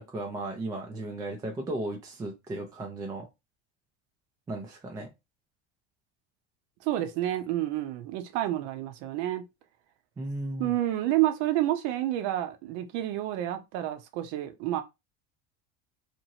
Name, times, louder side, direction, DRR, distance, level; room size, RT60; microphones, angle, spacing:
voice 1, 0.0-3.3 4.5-5.1 10.2-10.7, right 2 dB, 10° right, 0.3 m, -35 dB
voice 2, 6.8-9.4 10.6-14.8, right 14 dB, 65° right, 0.7 m, -29 dB
2.8 x 2.6 x 2.9 m
supercardioid pair, 140°, 33 cm